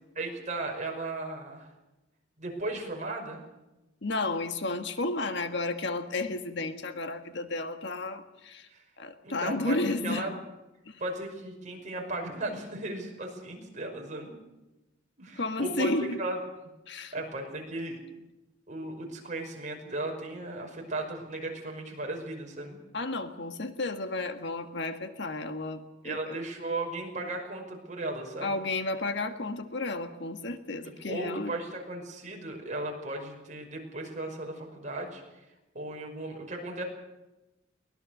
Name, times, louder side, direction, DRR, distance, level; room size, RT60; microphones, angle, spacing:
voice 1, 0.2-1.7 2.4-3.4 8.7-8.8 9.2-9.8 10.0-10.4 11.0-14.4 15.2-15.9 16.2-16.4 17.1-18.0 18.7-22.8 26.0-28.6 30.8-35.2 35.7-36.8, right 2 dB, 40° right, 1 dB, 5.6 m, -36 dB
voice 2, 4.0-8.7 9.0-10.3 10.9-11.0 15.4-16.2 16.9-17.1 22.9-26.4 28.4-31.5, left 2 dB, 65° left, 8 dB, 1.7 m, -32 dB
23.5 x 18.5 x 6.7 m, 1.0 s
head